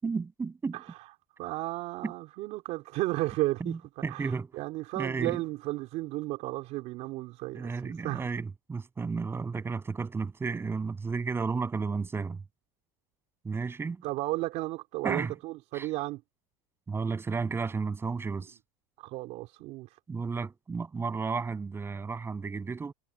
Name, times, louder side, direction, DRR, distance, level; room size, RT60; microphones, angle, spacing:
voice 1, 0.0-0.8 2.0-2.1 3.6-4.5 5.0-5.4 7.5-12.4 13.4-14.0 15.0-15.3 15.7-15.9 16.9-18.6 20.1-22.9, right 4 dB, 15° right, 7.7 m, -33 dB
voice 2, 1.4-8.2 14.0-16.2 19.0-20.0, right 18 dB, 55° right, 3.7 m, -34 dB
supercardioid pair, 130°, 14 cm